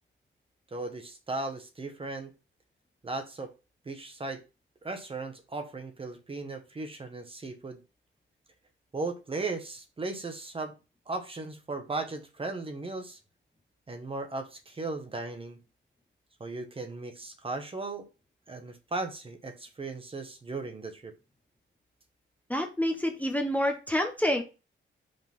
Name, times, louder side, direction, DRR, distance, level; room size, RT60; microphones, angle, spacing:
voice 1, 0.7-2.3 3.0-3.5 3.8-4.4 4.8-7.8 8.9-10.7 11.1-13.2 13.9-15.6 16.4-18.1 18.5-21.1, right 3 dB, 25° right, 6 dB, 1.1 m, -36 dB
voice 2, 22.5-24.4, left 1 dB, 5° left, 4 dB, 0.8 m, -28 dB
5.3 x 3.9 x 5.2 m, 0.30 s
wide cardioid pair, 145°, 21 cm